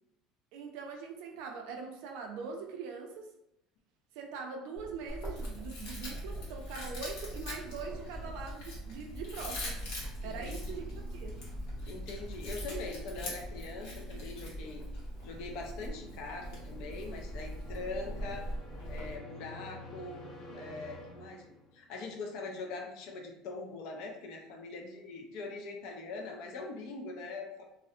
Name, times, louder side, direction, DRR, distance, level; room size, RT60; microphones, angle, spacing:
voice 1, 0.5-3.3 4.1-9.8 10.2-10.8 11.1-11.4, right 5 dB, 70° right, 3 dB, 0.4 m, -42 dB
Bird, 4.8-13.6, equal, 5° right, 0.7 m, -46 dB
Chewing mastication, 5.1-19.2, equal, 90° left, 1.0 m, -42 dB
sound 1, 9.2-21.8, equal, 35° left, 0.8 m, -52 dB
voice 2, 10.2-10.9 11.8-14.9 15.2-18.5 18.9-21.5 21.7-27.7, left 3 dB, 60° left, 2 dB, 0.4 m, -42 dB
2.4 x 2.0 x 2.6 m, 0.83 s
cardioid pair, 165°, 0 cm